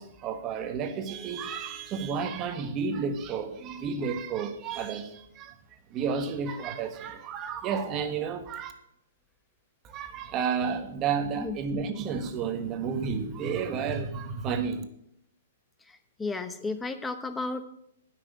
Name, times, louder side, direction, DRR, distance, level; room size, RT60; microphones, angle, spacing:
voice 1, 0.0-5.5 5.9-8.7 9.8-14.8, right 6 dB, 30° right, 8 dB, 1.3 m, -31 dB
voice 2, 15.8-17.6, left 3 dB, 10° left, 10 dB, 0.9 m, -34 dB
9.6 x 6.2 x 8.4 m, 0.75 s
hypercardioid pair, 135°, 0 cm